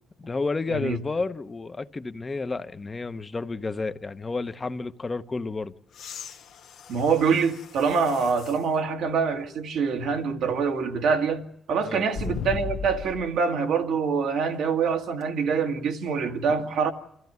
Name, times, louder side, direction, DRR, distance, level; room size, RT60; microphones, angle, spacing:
voice 1, 0.2-5.7 11.8-12.0, left 3 dB, 25° left, 0.9 m, -31 dB
sound 1, 5.9-8.7 9.3-9.4 12.1-13.4 15.2-15.3, left 6 dB, 80° left, 1.2 m, -37 dB
voice 2, 6.9-16.9, right 5 dB, 80° right, 1.9 m, -25 dB
26.5 x 14.5 x 9.4 m
cardioid pair, 90°, 0 cm